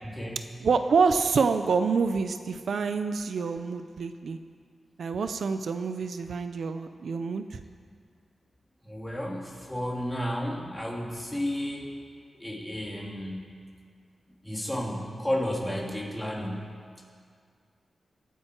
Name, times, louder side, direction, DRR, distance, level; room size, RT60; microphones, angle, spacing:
voice 1, 0.0-0.4 8.8-11.9 12.4-13.5 14.4-16.7, equal, 10° left, -2 dB, 2.2 m, -32 dB
voice 2, 0.6-4.4 5.0-7.6, right 5 dB, 70° right, 9 dB, 0.6 m, -27 dB
23.0 x 9.4 x 4.5 m, 2.1 s
wide cardioid pair, 150°, 0 cm